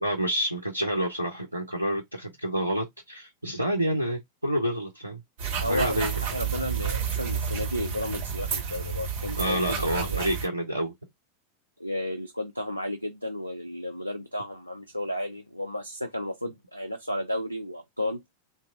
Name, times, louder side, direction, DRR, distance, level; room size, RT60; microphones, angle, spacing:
voice 1, 0.0-5.2 5.7-6.1 9.4-10.9, right 1 dB, 85° right, 0.5 m, -28 dB
sound 1, 5.4-10.5, right 7 dB, 45° right, 1.7 m, -31 dB
voice 2, 5.6-10.2 11.8-18.2, left 1 dB, 90° left, 0.3 m, -33 dB
2.8 x 2.2 x 2.4 m
figure-of-eight pair, 90°, 0 cm